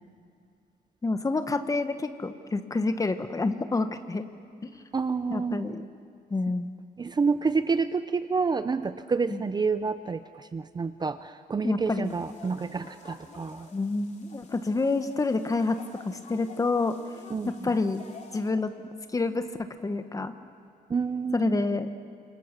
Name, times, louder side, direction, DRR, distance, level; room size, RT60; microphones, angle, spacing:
voice 1, 1.0-4.3 4.6-4.8 5.3-5.8 6.3-6.7 9.3-9.4 11.6-12.2 13.7-15.8 16.0-16.9 17.6-18.0 18.3-18.7 19.1-19.4 19.8-20.3 21.3-21.9, left 3 dB, 20° left, 9 dB, 1.3 m, -28 dB
voice 2, 4.9-5.7 7.0-13.7 17.3-17.7 20.9-21.7, right 5 dB, 25° right, 12 dB, 0.6 m, -29 dB
sound 1, 12.0-18.5, left 4 dB, 45° left, 3.4 m, -50 dB
29.5 x 27.0 x 6.9 m, 2.4 s
wide cardioid pair, 150°, 16 cm